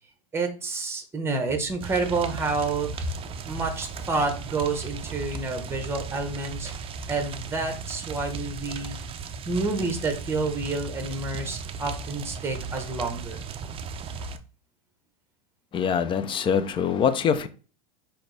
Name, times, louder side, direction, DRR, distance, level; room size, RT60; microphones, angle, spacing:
voice 1, 0.3-3.1 3.4-9.0 9.5-13.5, right 3 dB, 10° right, 1.2 m, -29 dB
sound 1, 1.8-14.4, right 5 dB, 30° right, 0.5 m, -36 dB
voice 2, 15.7-17.5, left 7 dB, 25° left, 0.5 m, -24 dB
5.7 x 2.7 x 3.4 m
hypercardioid pair, 105°, 20 cm